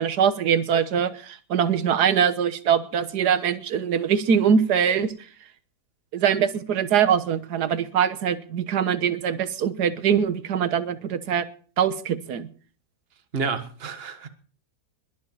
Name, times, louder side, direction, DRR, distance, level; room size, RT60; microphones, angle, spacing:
voice 1, 0.0-5.1 6.1-11.4 11.8-12.5, right 7 dB, 75° right, 1.7 m, -23 dB
voice 2, 13.3-14.3, right 5 dB, 40° right, 1.6 m, -29 dB
21.5 x 7.3 x 7.3 m
omnidirectional pair, 1.7 m